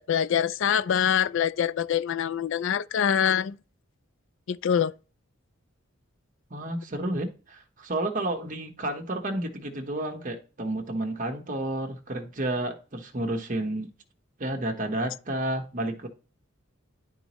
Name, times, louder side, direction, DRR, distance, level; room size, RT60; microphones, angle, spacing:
voice 1, 0.0-3.6 4.5-4.9, left 8 dB, 65° left, 0.4 m, -25 dB
voice 2, 6.5-13.9 14.4-16.1, right 1 dB, 40° right, 1.1 m, -31 dB
10.5 x 4.1 x 3.0 m
head